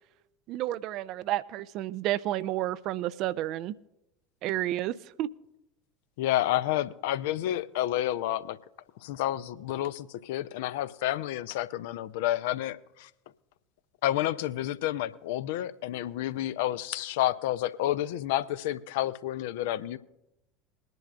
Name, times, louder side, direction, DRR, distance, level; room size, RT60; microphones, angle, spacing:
voice 1, 0.5-3.7 4.4-5.3, right 14 dB, 50° right, 0.4 m, -31 dB
voice 2, 6.2-8.6 9.0-13.1 14.0-20.0, left 13 dB, 60° left, 0.5 m, -30 dB
21.5 x 10.5 x 2.5 m
figure-of-eight pair, 70°, 0 cm